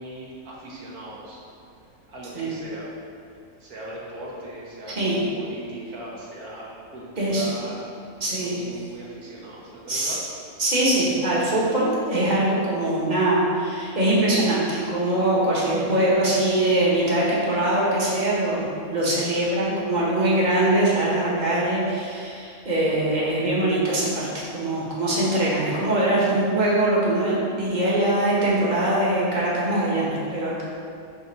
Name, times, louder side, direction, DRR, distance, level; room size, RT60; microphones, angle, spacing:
voice 1, 0.0-1.4 2.1-2.9 3.6-7.9 8.4-10.2, right 1 dB, 75° right, -5 dB, 1.7 m, -39 dB
voice 2, 8.2-8.6 9.9-10.2 10.6-18.6 18.9-24.3 24.5-30.6, right 1 dB, 30° right, -6 dB, 1.4 m, -22 dB
5.2 x 4.1 x 5.9 m, 2.4 s
omnidirectional pair, 1.6 m